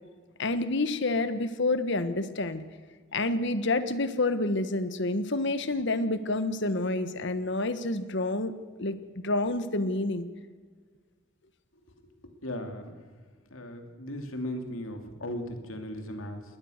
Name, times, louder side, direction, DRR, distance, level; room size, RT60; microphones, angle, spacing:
voice 1, 0.4-2.6 3.1-8.5 8.8-9.0 9.2-10.3, left 2 dB, 60° left, 12 dB, 1.3 m, -28 dB
voice 2, 12.4-13.0 13.5-16.4, left 1 dB, 85° left, 5 dB, 2.9 m, -37 dB
20.5 x 19.5 x 6.6 m, 1.5 s
head